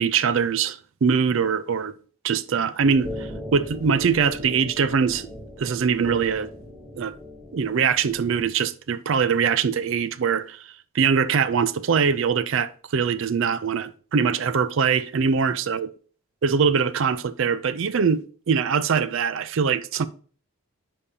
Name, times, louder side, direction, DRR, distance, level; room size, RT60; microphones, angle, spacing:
voice 1, 0.0-2.0 2.2-5.3 5.6-6.5 7.0-7.1 7.5-10.7 10.9-15.9 16.4-20.1, right 6 dB, 60° right, 0.4 m, -22 dB
sound 1, 2.8-8.4, left 1 dB, 5° right, 0.9 m, -39 dB
9.8 x 5.2 x 2.8 m
head